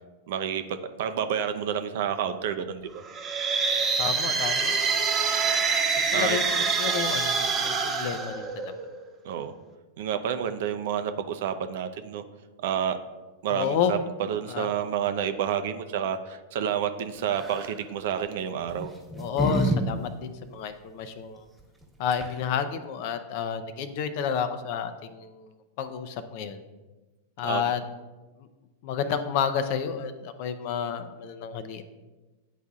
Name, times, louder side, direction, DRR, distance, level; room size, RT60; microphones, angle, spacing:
voice 1, 0.3-3.0 6.1-6.4 9.2-9.5 10.0-12.2 12.6-13.0 13.4-18.9 27.4-27.7, right 8 dB, 65° right, 9 dB, 0.5 m, -29 dB
sound 1, 3.0-9.0, right 5 dB, 30° right, 0.9 m, -26 dB
voice 2, 4.0-4.7 6.0-8.7 13.5-14.0 14.5-14.7 19.1-21.4 22.0-26.6 27.4-27.8 28.8-31.8, left 7 dB, 55° left, 10 dB, 0.5 m, -30 dB
sound 2, 17.3-17.7 18.7-19.8 20.0-20.1 21.8-21.9 22.1-22.5, equal, 5° right, 1.3 m, -28 dB
10.0 x 4.1 x 2.4 m, 1.2 s
hypercardioid pair, 105°, 0 cm